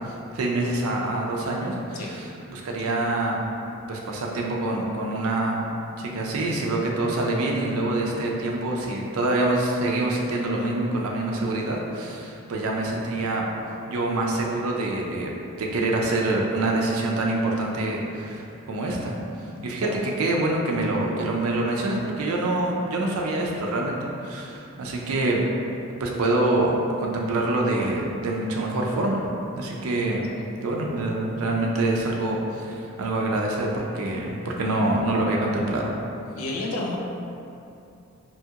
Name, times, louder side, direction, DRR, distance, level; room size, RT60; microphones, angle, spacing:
voice 1, 0.1-3.4 3.9-5.6 6.0-13.5 13.9-15.3 15.6-19.2 19.6-25.4 26.0-29.3 29.5-30.3 30.6-35.9, right 2 dB, 90° right, -1 dB, 0.4 m, -26 dB
voice 2, 36.3-37.0, left 2 dB, 85° left, -1 dB, 0.5 m, -30 dB
2.8 x 2.4 x 2.8 m, 2.7 s
head